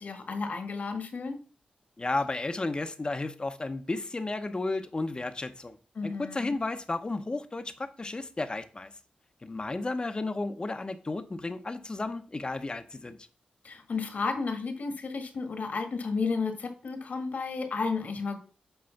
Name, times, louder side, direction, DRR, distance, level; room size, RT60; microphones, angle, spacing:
voice 1, 0.0-1.4 5.9-6.5 13.6-18.4, left 4 dB, 60° left, 1.5 m, -32 dB
voice 2, 2.0-5.8 6.0-8.9 9.4-13.2, left 2 dB, 30° left, 0.9 m, -33 dB
7.9 x 3.1 x 5.8 m
cardioid pair, 60°, 3 cm